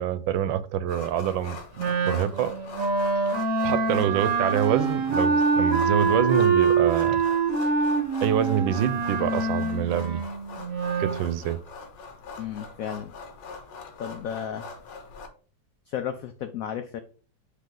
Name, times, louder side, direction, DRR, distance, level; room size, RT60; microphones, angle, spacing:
voice 1, 0.0-1.6 1.9-2.6 3.6-7.2 8.2-10.2 11.0-11.6, right 10 dB, 80° right, 14 dB, 1.3 m, -26 dB
sound 1, 0.9-15.3, left 4 dB, 70° left, 1.6 m, -42 dB
Wind instrument woodwind instrument, 1.8-11.2, right 4 dB, 55° right, 1.1 m, -25 dB
voice 2, 12.4-13.1 14.0-14.7 15.9-17.0, left 9 dB, 90° left, 9 dB, 0.7 m, -33 dB
7.4 x 3.4 x 3.8 m, 0.39 s
omnidirectional pair, 2.1 m